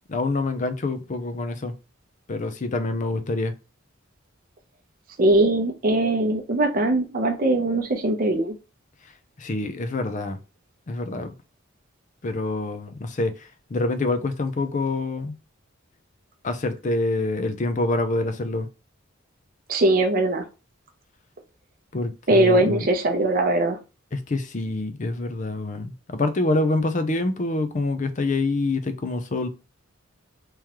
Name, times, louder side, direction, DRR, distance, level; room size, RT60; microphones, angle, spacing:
voice 1, 0.1-1.7 2.3-3.5 9.4-10.4 10.9-11.3 12.2-15.3 16.4-18.7 21.9-22.8 24.1-29.5, left 2 dB, 40° left, 0.5 m, -26 dB
voice 2, 5.2-8.6 19.7-20.4 22.3-23.8, right 2 dB, 45° right, 0.7 m, -21 dB
3.6 x 3.1 x 3.0 m
head